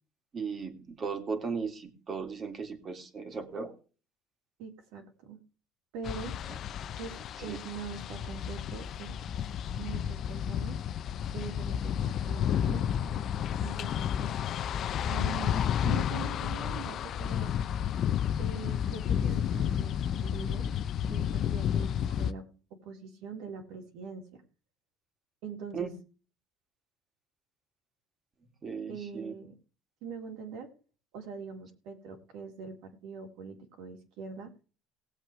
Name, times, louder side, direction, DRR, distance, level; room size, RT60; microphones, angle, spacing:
voice 1, 0.3-3.7 7.5-7.6 25.7-25.9 28.6-29.3, right 5 dB, 35° right, 6 dB, 2.7 m, -36 dB
voice 2, 4.6-5.4 5.9-6.3 7.0-9.2 9.8-10.8 11.3-13.2 13.6-14.3 15.1-17.5 18.4-20.7 21.0-22.4 22.7-24.4 25.4-25.9 28.9-29.6 30.0-30.7 31.1-34.5, right 5 dB, 75° right, 3 dB, 3.7 m, -43 dB
sound 1, 6.0-22.3, left 9 dB, 50° left, 0.6 m, -31 dB
19.5 x 8.1 x 3.3 m, 0.37 s
cardioid pair, 120°, 0 cm